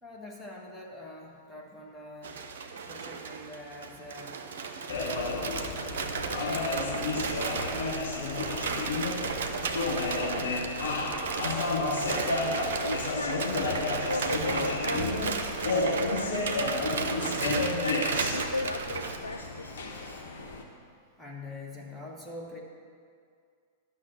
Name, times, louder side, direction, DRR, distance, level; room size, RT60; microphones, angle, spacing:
voice 1, 0.0-2.4 2.9-4.4 4.8-7.1 7.5-8.6 9.6-10.7 21.2-22.6, left 2 dB, 5° left, -3 dB, 1.6 m, -45 dB
sound 1, 2.2-19.2, right 5 dB, 60° right, 0.7 m, -34 dB
sound 2, 4.9-20.6, left 3 dB, 65° left, 1.3 m, -32 dB
voice 2, 12.8-17.0 17.5-20.2, left 2 dB, 85° left, 5 dB, 0.3 m, -36 dB
11.5 x 6.2 x 6.3 m, 2.2 s
figure-of-eight pair, 95°, 0 cm